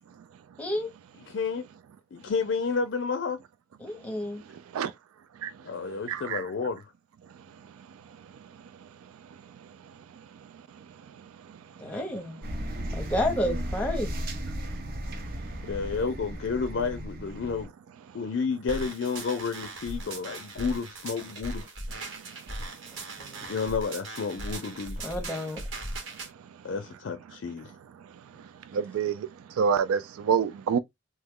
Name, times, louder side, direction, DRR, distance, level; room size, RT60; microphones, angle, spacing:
voice 1, 0.6-0.9 3.8-4.4 11.8-12.4 12.9-14.3 23.2-23.5 25.0-25.6, left 1 dB, 5° left, 0.7 m, -31 dB
voice 2, 1.3-1.6 2.1-3.4 5.6-6.8 15.6-17.7 18.1-21.7 23.5-25.0 26.6-27.7, left 5 dB, 60° left, 0.4 m, -31 dB
voice 3, 6.1-6.4 11.5-11.6 28.4-30.8, right 6 dB, 85° right, 0.3 m, -27 dB
sound 1, 12.4-17.7, equal, 45° right, 0.6 m, -35 dB
sound 2, 18.7-26.3, right 2 dB, 65° right, 1.1 m, -39 dB
3.1 x 2.2 x 3.5 m
head